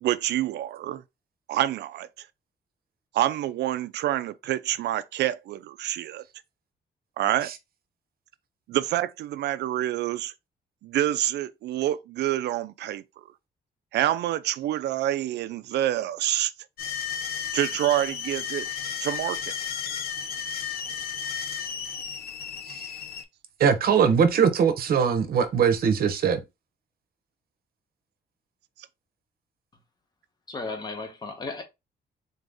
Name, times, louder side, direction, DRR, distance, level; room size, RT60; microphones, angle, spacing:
voice 1, 0.0-1.0 1.5-2.3 3.1-6.2 7.2-7.5 8.7-10.3 10.8-13.0 13.9-16.5 17.5-18.7 19.0-19.5, right 13 dB, 85° right, 0.4 m, -27 dB
sound 1, 16.8-23.2, left 7 dB, 65° left, 0.6 m, -33 dB
voice 2, 23.6-26.4, right 7 dB, 60° right, 0.7 m, -21 dB
voice 3, 30.5-31.6, left 3 dB, 25° left, 0.9 m, -34 dB
3.9 x 2.6 x 3.5 m
cardioid pair, 155°, 17 cm